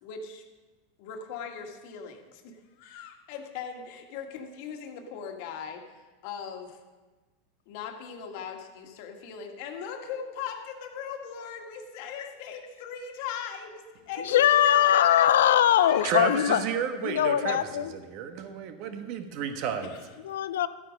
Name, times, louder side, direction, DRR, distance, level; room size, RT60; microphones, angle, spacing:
voice 1, 0.0-0.4 1.0-6.8 7.7-15.3 15.8-16.8 19.8-20.2, left 7 dB, 60° left, 3 dB, 1.7 m, -39 dB
voice 2, 14.3-16.6 17.0-17.9 20.2-20.7, left 11 dB, 85° left, 13 dB, 0.6 m, -21 dB
voice 3, 16.0-19.9, right 7 dB, 55° right, 7 dB, 1.3 m, -32 dB
13.0 x 9.1 x 5.2 m, 1.3 s
supercardioid pair, 125°, 0 cm